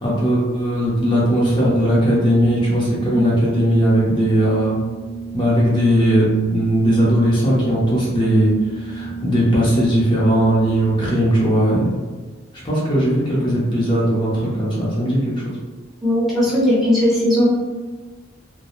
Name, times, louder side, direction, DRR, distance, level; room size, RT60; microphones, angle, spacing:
voice 1, 0.0-4.8 5.3-12.0 12.6-15.6, equal, 25° left, -6 dB, 0.6 m, -18 dB
Organ, 1.0-11.3, right 6 dB, 90° right, 0.4 m, -33 dB
voice 2, 16.0-17.5, left 1 dB, ahead, -10 dB, 0.9 m, -17 dB
3.0 x 2.0 x 2.4 m, 1.3 s
head